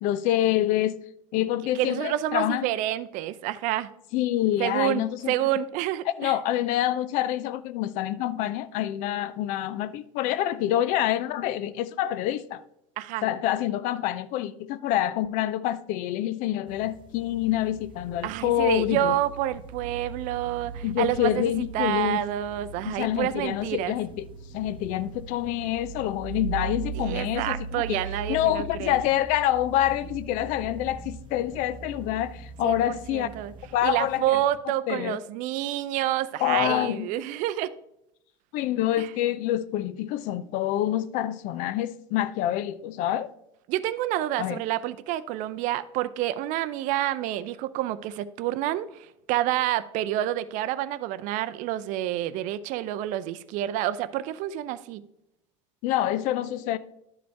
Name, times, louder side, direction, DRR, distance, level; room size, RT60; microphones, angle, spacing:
voice 1, 0.0-1.0 1.3-2.7 4.1-5.3 6.2-12.6 13.2-19.1 20.8-22.2 22.9-24.1 24.5-28.0 28.3-33.3 33.7-34.4 34.9-35.2 36.4-37.1 38.5-43.3 44.4-44.6 55.8-56.8, left 13 dB, 55° left, 0.5 m, -26 dB
voice 2, 1.7-3.9 4.6-6.4 13.0-13.2 18.2-23.9 26.9-29.0 32.6-33.5 33.8-37.7 39.0-39.1 43.7-55.0, right 13 dB, 50° right, 0.4 m, -28 dB
sound 1, 16.7-34.6, right 4 dB, 30° right, 1.1 m, -40 dB
11.5 x 5.1 x 3.4 m
hypercardioid pair, 90°, 16 cm